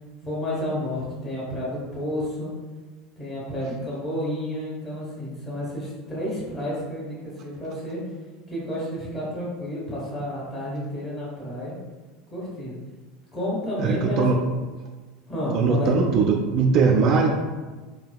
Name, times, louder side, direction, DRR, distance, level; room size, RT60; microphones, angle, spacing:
voice 1, 0.2-2.5 3.2-8.0 8.5-11.8 12.3-12.8 13.3-14.2 15.3-16.0 17.1-17.3, left 1 dB, 30° left, -6 dB, 1.5 m, -31 dB
voice 2, 13.8-14.4 15.5-17.3, right 5 dB, 45° right, 2 dB, 0.3 m, -20 dB
3.4 x 2.3 x 2.2 m, 1.3 s
figure-of-eight pair, 75°, 0 cm